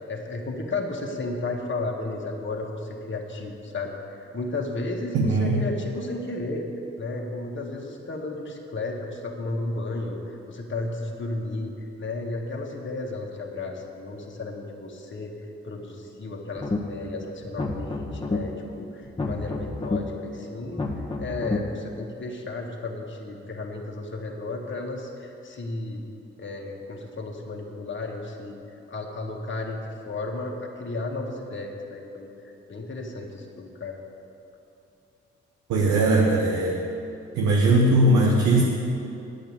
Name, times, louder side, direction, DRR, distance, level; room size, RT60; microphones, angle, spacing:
voice 1, 0.1-6.7 7.0-11.7 12.0-15.4 15.6-20.9 21.2-26.0 26.4-28.6 28.9-34.0, left 2 dB, 40° left, -1 dB, 1.8 m, -33 dB
voice 2, 5.1-5.7 35.7-36.8 37.3-38.6, right 2 dB, 80° right, -1 dB, 1.1 m, -20 dB
sound 1, 16.6-17.0 17.4-18.4 19.0-20.0 20.6-21.6, left 3 dB, 20° left, 1.7 m, -29 dB
9.0 x 7.8 x 8.7 m, 2.8 s
hypercardioid pair, 40°, 29 cm